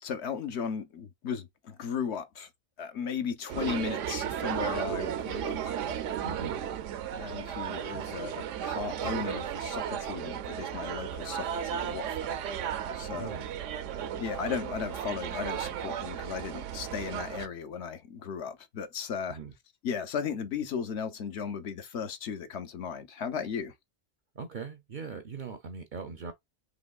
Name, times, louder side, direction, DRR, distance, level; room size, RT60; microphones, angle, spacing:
voice 1, 0.0-2.5 2.8-5.8 7.2-12.4 12.9-13.4 14.2-19.4 19.8-23.7, left 6 dB, 70° left, 1.0 m, -36 dB
sound 1, 3.5-17.5, right 9 dB, 85° right, 0.9 m, -34 dB
voice 2, 6.2-6.6 7.9-8.3 13.1-13.5 19.3-19.5 24.4-26.3, right 5 dB, 55° right, 0.6 m, -41 dB
3.8 x 2.9 x 2.3 m
omnidirectional pair, 1.2 m